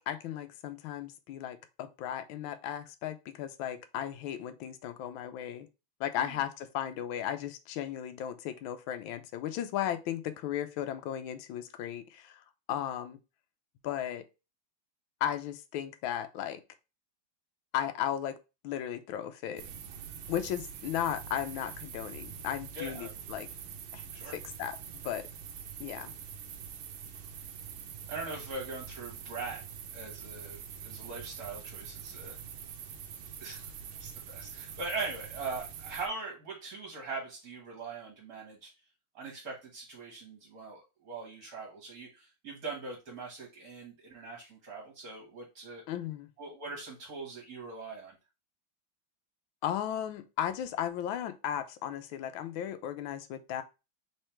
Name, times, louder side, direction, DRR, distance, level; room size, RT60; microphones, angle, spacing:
voice 1, 0.0-5.7 6.0-12.4 12.7-13.2 13.8-14.3 15.2-16.6 17.7-18.4 18.6-19.7 20.3-23.5 23.9-24.8 25.0-25.3 25.8-26.1 45.9-46.3 49.6-53.6, left 10 dB, 80° left, 9 dB, 1.4 m, -35 dB
sound 1, 19.6-36.1, right 7 dB, 85° right, 1.4 m, -45 dB
voice 2, 22.7-23.1 24.1-24.3 26.0-26.1 28.1-29.6 29.9-32.3 33.4-33.7 34.0-38.7 39.2-45.8 46.4-48.1, right 3 dB, 50° right, -1 dB, 1.7 m, -41 dB
3.7 x 3.3 x 4.3 m, 0.28 s
omnidirectional pair, 2.1 m